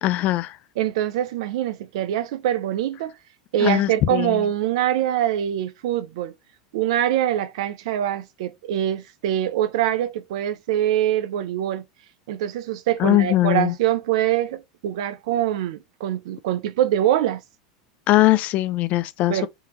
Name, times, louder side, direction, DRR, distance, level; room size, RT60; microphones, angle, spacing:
voice 1, 0.0-0.6 3.6-4.4 13.0-13.7 18.1-19.5, left 16 dB, 50° left, 0.4 m, -20 dB
voice 2, 0.8-3.1 3.5-6.3 6.7-11.8 12.3-17.4 19.3-19.5, right 12 dB, 70° right, 0.5 m, -24 dB
3.6 x 2.9 x 2.9 m
hypercardioid pair, 95°, 3 cm